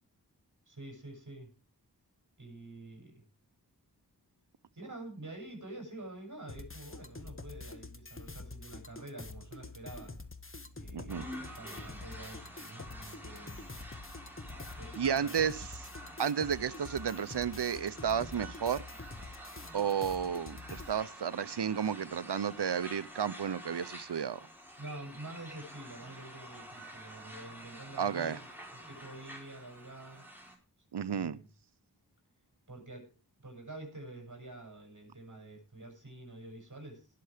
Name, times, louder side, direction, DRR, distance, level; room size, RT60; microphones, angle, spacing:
voice 1, 0.7-1.5 2.4-3.2 4.8-10.2 10.7-13.7 14.5-15.6 24.8-30.2 31.1-31.5 32.7-33.2 33.4-37.1, right 2 dB, 50° right, 7.2 m, -47 dB
sound 1, 6.5-20.9, left 3 dB, 30° left, 1.3 m, -47 dB
voice 2, 10.9-11.3 15.0-15.6 16.2-18.8 19.7-24.5 28.0-28.4 30.9-31.4, right 7 dB, 80° right, 0.7 m, -32 dB
sound 2, 11.1-30.6, equal, 5° right, 4.4 m, -49 dB
19.5 x 6.8 x 5.0 m
wide cardioid pair, 60°, 40 cm